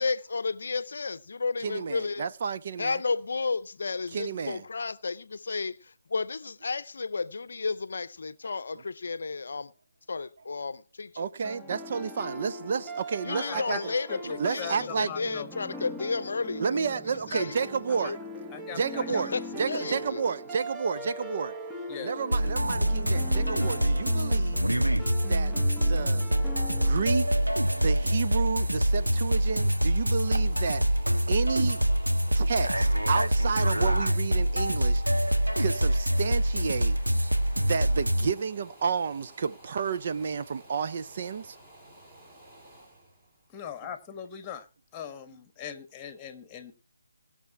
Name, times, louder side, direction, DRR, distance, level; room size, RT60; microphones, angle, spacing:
voice 1, 0.0-2.3 2.8-9.7 10.1-11.3 13.2-17.6 17.9-18.2 19.3-19.4 19.7-20.2, left 4 dB, 60° left, 0.7 m, -32 dB
voice 2, 1.6-3.0 4.1-4.6 8.5-8.6 11.2-13.8 14.4-15.1 16.6-18.2 18.7-19.3 19.6-21.5 22.0-24.6 25.3-25.5 25.8-26.3 26.6-27.3 27.7-30.8 31.3-31.8 32.3-35.0 35.6-37.0 37.6-41.6, right 6 dB, 40° right, 0.6 m, -31 dB
sound 1, 11.4-28.3, equal, 5° right, 1.0 m, -41 dB
voice 3, 13.3-13.8 14.1-14.2 14.6-15.5 18.0-18.1 18.5-19.2 21.9-22.1 43.5-44.6 44.9-46.7, left 8 dB, 15° left, 1.5 m, -40 dB
sound 2, 22.3-38.3, equal, 90° right, 1.5 m, -25 dB
sound 3, 26.9-44.6 45.1-45.2, right 1 dB, 25° right, 4.3 m, -52 dB
20.0 x 6.8 x 4.5 m
figure-of-eight pair, 150°, 0 cm